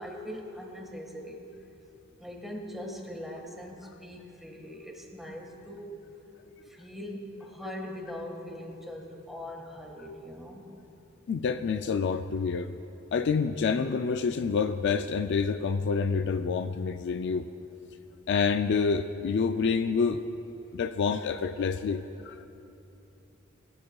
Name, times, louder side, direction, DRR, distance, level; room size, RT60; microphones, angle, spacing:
voice 1, 0.0-1.5 2.2-5.9 6.6-10.8, left 1 dB, ahead, 0 dB, 1.6 m, -41 dB
voice 2, 11.3-12.7 13.1-17.5 18.3-20.2 20.7-22.5, left 5 dB, 55° left, 9 dB, 0.4 m, -27 dB
21.0 x 13.0 x 2.3 m, 2.9 s
head